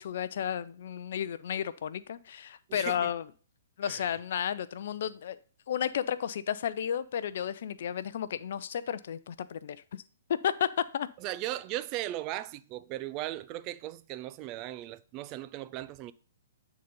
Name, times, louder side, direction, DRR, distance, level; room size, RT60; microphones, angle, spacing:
voice 1, 0.0-3.2 3.8-5.4 5.7-10.0 10.3-11.1, left 9 dB, 55° left, 0.5 m, -32 dB
voice 2, 2.7-3.1 3.8-4.2 11.2-16.1, right 15 dB, 30° right, 0.4 m, -37 dB
9.3 x 4.0 x 5.4 m
figure-of-eight pair, 125°, 0 cm